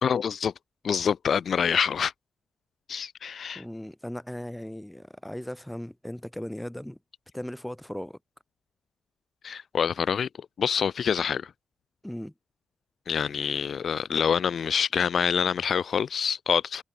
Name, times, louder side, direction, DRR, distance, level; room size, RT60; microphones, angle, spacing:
voice 1, 0.0-0.5 0.8-2.1 2.9-3.6 9.4-10.3 10.6-11.5 13.1-16.8, left 7 dB, 65° left, 0.3 m, -26 dB
voice 2, 3.5-7.0 7.3-8.2 12.0-12.3, left 1 dB, 5° left, 1.2 m, -37 dB
supercardioid pair, 50°, 0 cm